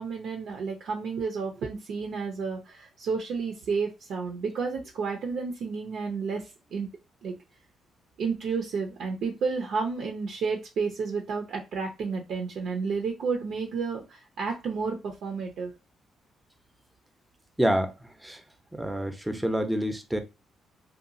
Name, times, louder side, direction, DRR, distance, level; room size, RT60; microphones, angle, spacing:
voice 1, 0.0-6.5 6.7-6.9 7.2-7.3 8.2-15.7, right 5 dB, 70° right, 0.5 m, -31 dB
voice 2, 17.6-17.9 18.2-18.4 18.7-20.2, equal, 5° right, 0.5 m, -27 dB
2.8 x 2.3 x 2.6 m
cardioid pair, 90°, 0 cm